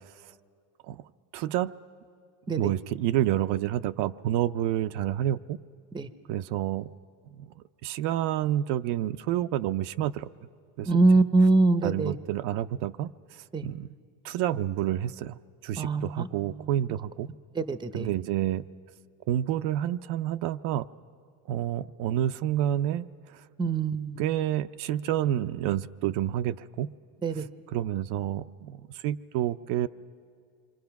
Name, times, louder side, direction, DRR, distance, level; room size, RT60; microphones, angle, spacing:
voice 1, 1.3-1.7 2.5-5.6 6.3-6.9 7.4-10.3 10.8-10.9 11.8-13.9 14.2-17.3 17.9-18.6 19.3-20.9 21.5-23.4 24.2-26.9 27.3-29.9, right 12 dB, 75° right, 10 dB, 0.6 m, -29 dB
voice 2, 10.9-12.2 13.5-13.7 15.8-16.3 17.6-18.1 23.6-24.2 27.2-27.5, right 3 dB, 10° right, 12 dB, 0.6 m, -23 dB
27.0 x 24.0 x 5.9 m, 2.3 s
supercardioid pair, 110°, 40 cm